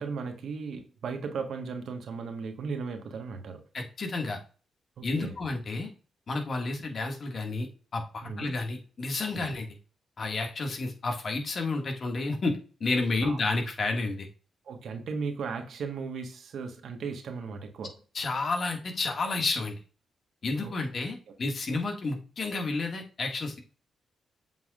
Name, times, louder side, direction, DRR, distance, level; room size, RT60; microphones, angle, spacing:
voice 1, 0.0-3.6 5.0-5.3 8.2-8.5 9.4-9.5 13.2-13.4 14.7-18.0 20.6-20.7, right 5 dB, 70° right, 6 dB, 1.3 m, -36 dB
voice 2, 3.7-4.4 5.0-5.9 6.3-7.7 7.9-9.7 10.2-14.3 18.1-19.8 20.4-23.6, left 3 dB, 55° left, 3 dB, 1.8 m, -31 dB
7.6 x 5.6 x 2.4 m, 0.37 s
hypercardioid pair, 40°, 0 cm